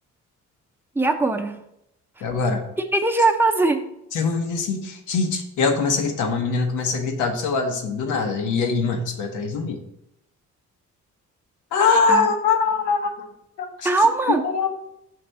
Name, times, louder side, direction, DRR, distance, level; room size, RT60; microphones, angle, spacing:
voice 1, 1.0-1.6 2.9-3.9 12.1-12.3 13.8-14.5, right 3 dB, 5° right, 4 dB, 0.6 m, -20 dB
voice 2, 2.2-2.6 4.1-9.8 11.7-13.1 13.6-13.9 14.3-14.7, left 4 dB, 85° left, 4 dB, 1.0 m, -23 dB
6.0 x 3.3 x 5.2 m, 0.80 s
cardioid pair, 90°, 30 cm